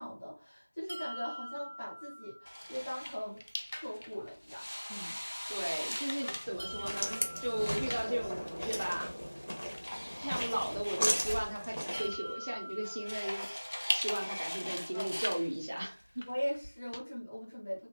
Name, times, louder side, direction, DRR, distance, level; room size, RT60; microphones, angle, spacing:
voice 1, 0.0-3.4 3.7-5.2 14.6-15.1 16.2-17.9, equal, 10° left, -10 dB, 0.8 m, -40 dB
sound 1, 0.9-2.8 6.6-8.7 11.9-14.0, equal, 75° right, 0.6 m, -46 dB
sound 2, 2.5-17.0, equal, 60° left, 0.5 m, -41 dB
voice 2, 5.5-9.1 10.2-13.5 13.9-16.2, right 1 dB, 30° right, -2 dB, 0.4 m, -36 dB
sound 3, 6.5-12.1, equal, 75° left, 0.9 m, -37 dB
2.4 x 2.1 x 3.0 m, 0.33 s
figure-of-eight pair, 175°, 0 cm